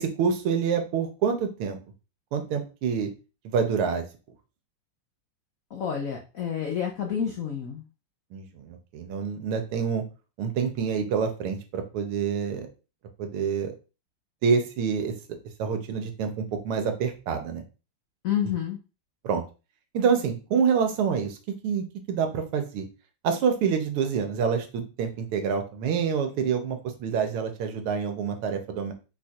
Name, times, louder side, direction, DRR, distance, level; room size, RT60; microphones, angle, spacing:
voice 1, 0.0-1.8 2.3-3.1 3.4-4.0 8.3-10.0 10.4-12.7 13.2-13.8 14.4-15.1 15.6-17.6 19.2-19.4 19.9-21.4 21.6-22.9 23.2-28.9, right 6 dB, 85° right, 6 dB, 1.7 m, -27 dB
voice 2, 5.7-7.8 18.2-18.8, left 8 dB, 90° left, 2 dB, 0.7 m, -29 dB
4.8 x 2.4 x 4.3 m, 0.31 s
omnidirectional pair, 2.4 m